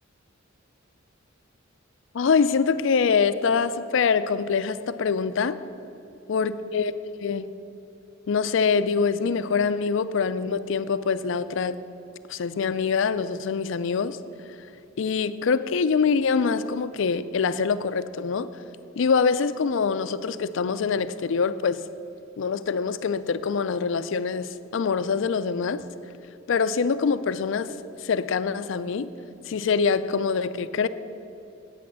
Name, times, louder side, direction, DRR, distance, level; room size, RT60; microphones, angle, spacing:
voice 1, 2.1-5.6 6.3-6.9 7.2-7.5 8.3-11.8 12.3-14.2 15.0-18.5 19.0-21.8 22.4-25.9 26.5-27.7 28.0-29.1 29.5-30.9, left 5 dB, 65° left, 14 dB, 0.4 m, -24 dB
8.7 x 8.4 x 7.4 m, 2.7 s
head